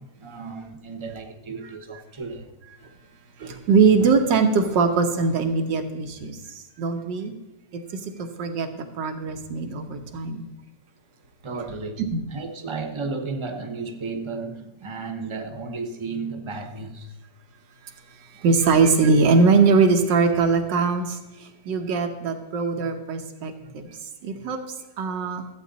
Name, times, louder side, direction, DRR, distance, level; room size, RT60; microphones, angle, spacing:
voice 1, 0.0-2.5 11.4-12.0 12.3-17.2 18.3-18.4 23.6-23.7 24.3-24.5, right 4 dB, 25° right, 0.7 m, -34 dB
voice 2, 3.4-6.4 6.8-7.3 8.2-8.7 9.0-10.4 12.1-12.2 18.4-23.9 24.2-24.6 25.0-25.4, right 4 dB, 90° right, 1.8 m, -21 dB
14.5 x 8.5 x 4.0 m
omnidirectional pair, 1.9 m